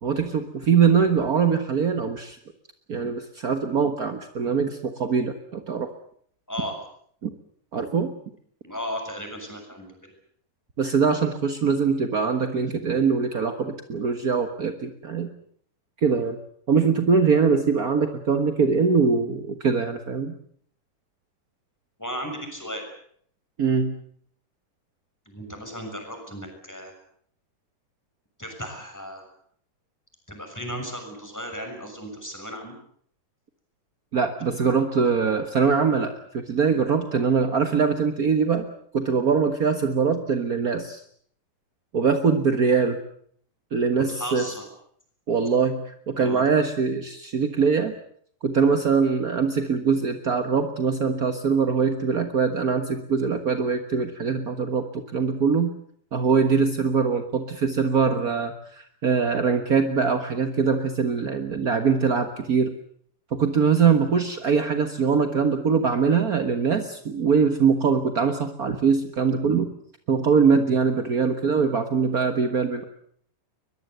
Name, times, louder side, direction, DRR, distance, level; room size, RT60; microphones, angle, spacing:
voice 1, 0.0-2.4 2.9-5.9 7.2-7.3 7.7-8.1 10.8-15.3 16.0-16.4 16.7-20.3 23.6-24.0 34.1-38.6 38.9-41.0 41.9-43.0 43.7-44.5 45.3-47.9 48.4-55.8 56.1-62.7 63.3-69.7 70.1-72.8, right 5 dB, 50° right, 7 dB, 1.0 m, -22 dB
voice 2, 8.6-9.9 22.0-22.8 25.2-26.9 28.4-29.3 30.3-32.7 43.9-44.6 46.2-46.4, equal, 5° left, 3 dB, 6.7 m, -35 dB
22.5 x 22.0 x 8.1 m, 0.62 s
omnidirectional pair, 3.8 m